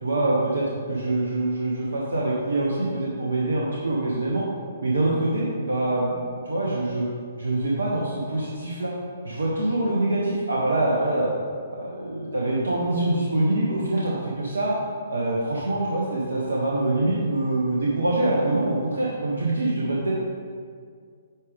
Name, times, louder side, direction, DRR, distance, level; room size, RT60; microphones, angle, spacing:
voice 1, 0.0-4.4 4.8-7.0 7.4-8.9 9.2-11.3 11.7-14.8 15.1-20.1, right 2 dB, 70° right, -5 dB, 1.2 m, -25 dB
8.8 x 5.1 x 3.6 m, 2.1 s
figure-of-eight pair, 125°, 0 cm